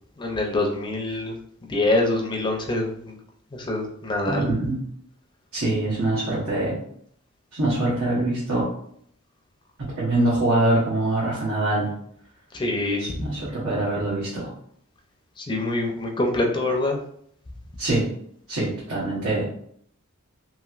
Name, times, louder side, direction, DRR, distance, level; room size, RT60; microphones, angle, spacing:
voice 1, 0.2-1.3 1.7-3.1 3.5-4.5 12.5-13.1 15.5-17.0, left 2 dB, 20° left, 1 dB, 0.5 m, -25 dB
voice 2, 4.3-4.8 5.5-6.8 7.5-8.6 9.8-11.9 13.0-14.5 17.8-18.1 18.5-19.4, right 2 dB, 70° right, -7 dB, 0.9 m, -24 dB
3.0 x 2.8 x 2.4 m, 0.65 s
head